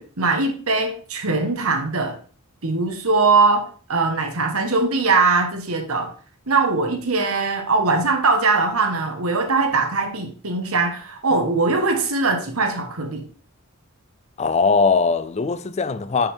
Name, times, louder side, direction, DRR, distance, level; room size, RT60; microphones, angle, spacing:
voice 1, 0.0-2.2 2.6-6.1 6.5-13.3, right 3 dB, 75° right, 1.5 m, -21 dB
voice 2, 14.4-16.3, left 4 dB, 30° left, 0.4 m, -20 dB
8.9 x 5.4 x 3.6 m
head